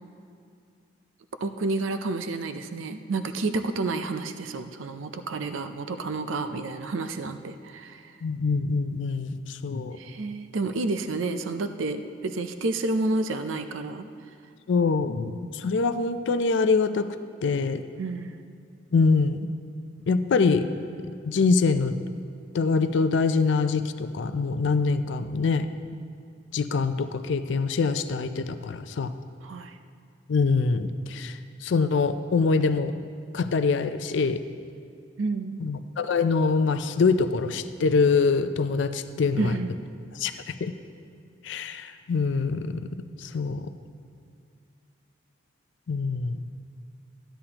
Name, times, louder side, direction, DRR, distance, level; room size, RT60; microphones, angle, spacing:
voice 1, 1.4-8.2 9.9-14.1 18.0-18.4 29.4-29.8 35.2-35.7 39.4-39.8, right 3 dB, 85° right, 8 dB, 0.5 m, -30 dB
voice 2, 8.2-10.0 14.7-17.1 17.4-17.8 18.9-19.5 20.1-20.6 21.2-22.0 22.5-25.7 26.5-29.1 30.3-32.9 33.3-34.4 35.6-39.6 40.2-40.7 41.4-42.8 43.2-43.7 45.9-46.4, left 4 dB, 70° left, 11 dB, 0.4 m, -24 dB
14.0 x 10.0 x 2.9 m, 2.4 s
head